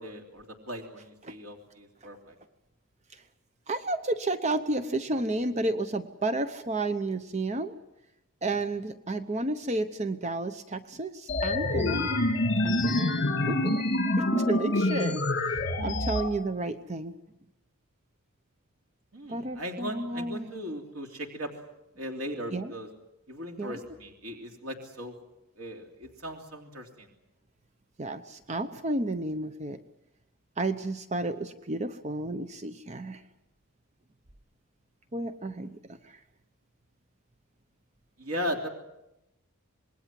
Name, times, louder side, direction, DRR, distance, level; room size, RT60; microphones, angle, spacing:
voice 1, 0.0-2.3 19.1-21.5 22.0-22.9 23.3-25.1 25.6-27.1 38.2-38.7, equal, 85° right, 2 dB, 3.1 m, -38 dB
voice 2, 3.7-7.7 8.4-12.1 12.6-13.1 13.5-13.8 14.2-17.1 19.3-20.6 22.5-22.7 23.6-23.8 28.0-29.8 30.6-33.2 35.1-35.7 36.0-36.2, right 2 dB, 30° right, 10 dB, 0.8 m, -32 dB
sound 1, 11.3-16.3, left 2 dB, 55° left, 2.6 m, -26 dB
27.0 x 20.5 x 7.6 m, 0.91 s
head